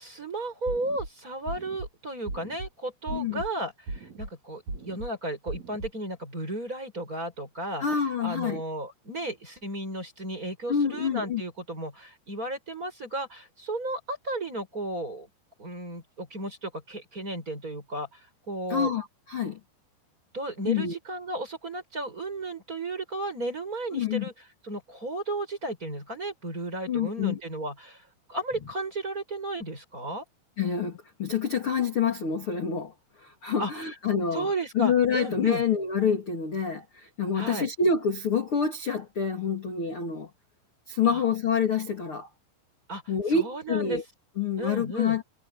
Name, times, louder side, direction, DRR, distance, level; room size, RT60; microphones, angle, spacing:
voice 1, 0.0-7.9 8.2-15.3 15.6-18.2 18.5-18.9 20.3-24.3 24.6-28.0 28.3-30.2 33.6-33.7 34.3-35.6 37.3-37.7 41.0-41.2 42.9-43.0 43.3-44.0 44.6-45.2, right 1 dB, 15° right, 6.8 m, -34 dB
sound 1, 0.7-1.1 1.5-1.9 2.3-2.7 3.1-3.5 3.9-4.3 4.7-5.1 5.5-5.9, right 2 dB, 40° right, 6.1 m, -37 dB
voice 2, 3.1-3.4 7.8-8.6 10.7-11.4 18.7-19.6 20.7-21.0 23.9-24.3 26.9-27.4 30.6-34.5 34.7-40.3 40.9-42.3 43.1-44.0 44.4-45.2, left 6 dB, 35° left, 2.5 m, -27 dB
omnidirectional pair, 5.3 m